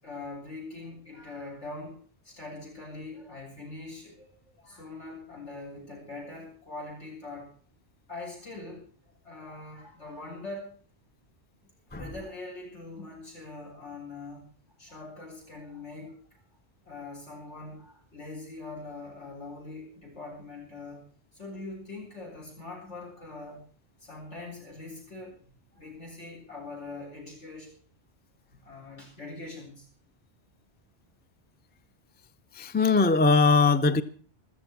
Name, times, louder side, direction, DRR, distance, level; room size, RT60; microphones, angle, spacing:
voice 1, 0.0-2.0 2.2-7.5 8.1-8.9 9.2-10.7 11.9-14.5 14.8-16.4 16.8-21.1 21.3-23.7 24.0-27.8 28.5-29.9, left 2 dB, 90° left, 8.6 m, -42 dB
voice 2, 32.5-34.0, left 4 dB, 15° left, 0.4 m, -21 dB
14.5 x 13.5 x 6.2 m
omnidirectional pair, 1.1 m